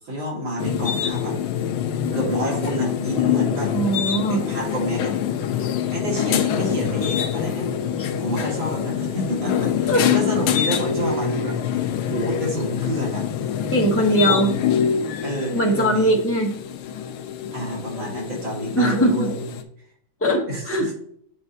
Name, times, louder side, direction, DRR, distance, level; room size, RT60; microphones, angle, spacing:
voice 1, 0.0-1.4 2.1-3.7 4.3-5.2 5.9-7.7 8.2-13.3 14.0-14.4 15.2-16.1 17.5-19.3 20.5-20.9, right 1 dB, 85° right, -4 dB, 3.0 m, -28 dB
sound 1, 0.6-19.6, left 9 dB, 90° left, 1.4 m, -25 dB
voice 2, 3.7-4.4 8.0-8.1 9.9-10.0 13.7-14.5 15.5-16.5 18.8-19.3 20.2-20.9, right 1 dB, 20° left, -2 dB, 0.4 m, -20 dB
8.7 x 3.9 x 2.8 m, 0.66 s
omnidirectional pair, 2.2 m